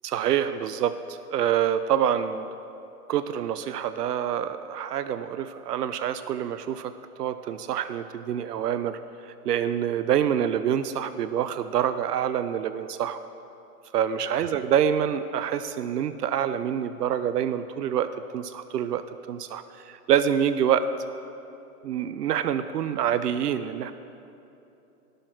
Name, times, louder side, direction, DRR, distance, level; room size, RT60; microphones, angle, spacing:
voice 1, 0.0-2.5 3.1-6.9 7.2-13.2 13.9-20.9 21.8-23.9, right 9 dB, 80° right, 12 dB, 0.5 m, -26 dB
12.0 x 6.4 x 4.5 m, 2.9 s
hypercardioid pair, 140°, 47 cm